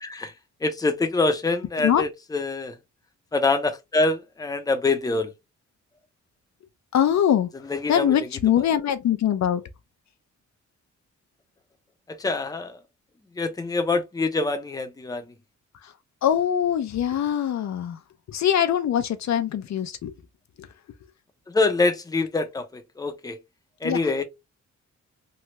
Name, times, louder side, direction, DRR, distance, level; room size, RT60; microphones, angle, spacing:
voice 1, 0.6-2.7 3.3-5.3 7.7-8.0 12.2-12.7 13.4-15.2 21.5-23.4 23.8-24.2, left 3 dB, 10° left, 0.6 m, -25 dB
voice 2, 6.9-7.5 7.9-9.6 15.8-15.9 16.2-18.0 18.3-20.1 20.6-20.7 23.8-24.0, left 10 dB, 65° left, 0.5 m, -23 dB
3.2 x 2.3 x 2.8 m
cardioid pair, 100°, 30 cm